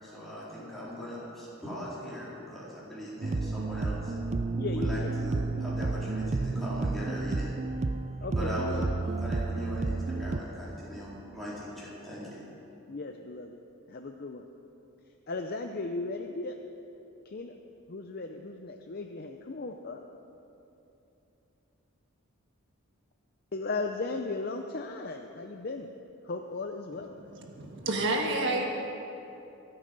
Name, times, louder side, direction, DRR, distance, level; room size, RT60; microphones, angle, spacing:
voice 1, 0.0-4.1 4.8-7.6 8.4-8.9 9.2-12.4, equal, ahead, -9 dB, 4.1 m, -39 dB
sound 1, 3.2-10.4, right 3 dB, 30° right, 0.4 m, -31 dB
voice 2, 4.5-5.1 8.2-9.2 12.9-13.6 13.9-14.5 15.3-16.6 17.2-17.6 17.9-20.0 23.5-25.9 26.2-27.2, left 3 dB, 45° left, 4 dB, 0.6 m, -36 dB
voice 3, 27.2-28.6, right 2 dB, 55° right, 1 dB, 1.5 m, -30 dB
24.0 x 8.8 x 5.3 m, 2.9 s
head